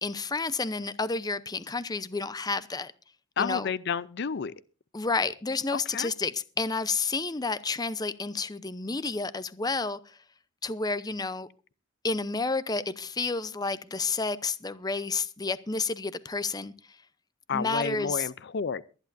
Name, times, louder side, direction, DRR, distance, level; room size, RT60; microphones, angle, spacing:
voice 1, 0.0-2.9 3.4-3.7 4.9-10.2 10.6-11.5 12.0-16.7 17.5-18.3, left 4 dB, 20° left, 0.7 m, -30 dB
voice 2, 3.4-4.5 5.7-6.1 17.5-18.8, left 6 dB, 55° left, 0.5 m, -31 dB
23.0 x 11.0 x 2.6 m
head